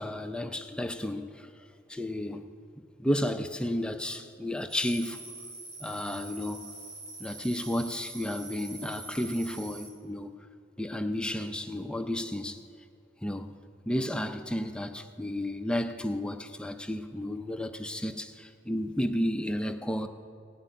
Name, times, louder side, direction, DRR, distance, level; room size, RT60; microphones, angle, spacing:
voice 1, 0.0-1.5 1.9-2.4 3.0-5.2 5.8-6.7 7.2-10.5 10.8-12.6 13.2-13.6 13.9-20.1, left 1 dB, 5° left, 0.4 m, -32 dB
sound 1, 4.7-9.9, right 3 dB, 85° right, 3.6 m, -44 dB
17.0 x 8.0 x 9.1 m
head